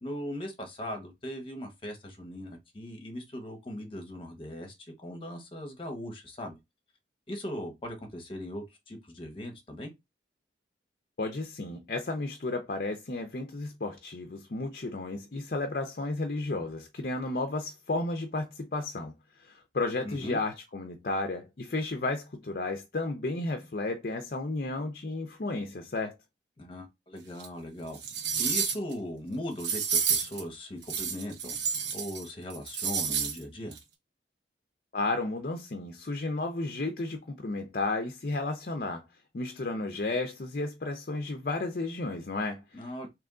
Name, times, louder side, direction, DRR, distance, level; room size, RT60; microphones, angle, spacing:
voice 1, 0.0-6.6 7.3-9.9 20.0-20.4 26.6-28.0 28.4-33.8 42.7-43.1, left 1 dB, 30° left, 1.1 m, -39 dB
voice 2, 11.2-19.1 19.4-26.1 34.9-39.0 39.3-43.1, left 2 dB, 55° left, 0.6 m, -33 dB
sound 1, 27.4-27.5 27.9-28.9 29.6-30.4 30.8-32.2 32.5-33.4 33.7-33.8, right 6 dB, 80° right, 1.0 m, -30 dB
3.5 x 3.0 x 3.7 m
head